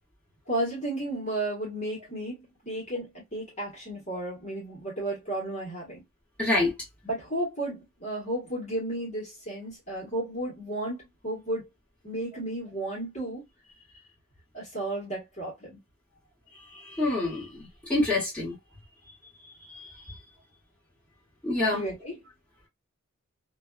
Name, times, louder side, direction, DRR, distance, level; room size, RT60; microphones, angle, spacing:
voice 1, 0.5-6.0 7.0-11.7 12.0-13.4 14.5-15.8 21.7-22.2, right 1 dB, 35° left, 1.2 m, -33 dB
voice 2, 6.4-6.7 16.9-18.6 21.4-21.8, left 2 dB, 5° left, 1.3 m, -26 dB
2.5 x 2.2 x 2.3 m
head